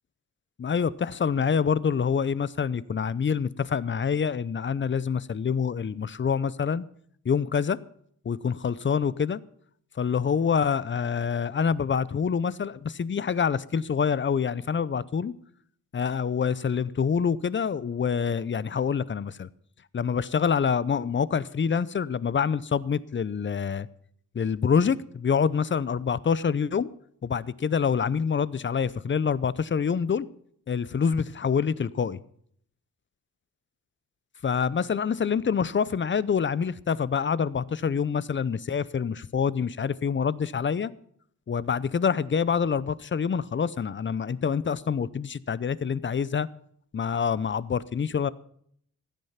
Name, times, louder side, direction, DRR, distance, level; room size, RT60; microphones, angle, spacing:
voice 1, 0.6-6.8 7.2-7.8 8.2-9.4 10.0-15.3 15.9-19.5 19.9-23.9 24.3-26.9 27.2-30.3 30.7-32.2 34.4-40.9 41.5-46.5 46.9-48.3, left 6 dB, 35° left, 0.7 m, -26 dB
15.5 x 11.0 x 5.8 m
cardioid pair, 75°, 34 cm